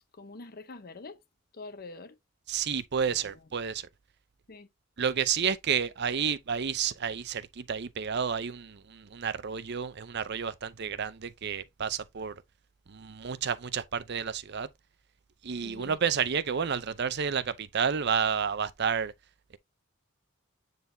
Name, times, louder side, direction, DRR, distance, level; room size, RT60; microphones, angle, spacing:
voice 1, 0.2-1.2 1.5-2.2 3.1-3.2 4.5-4.7 15.6-16.0, left 3 dB, 50° left, 0.9 m, -45 dB
voice 2, 2.5-3.9 5.0-12.3 12.9-14.7 15.4-19.1, right 7 dB, 55° right, 0.6 m, -30 dB
9.0 x 4.0 x 2.7 m
head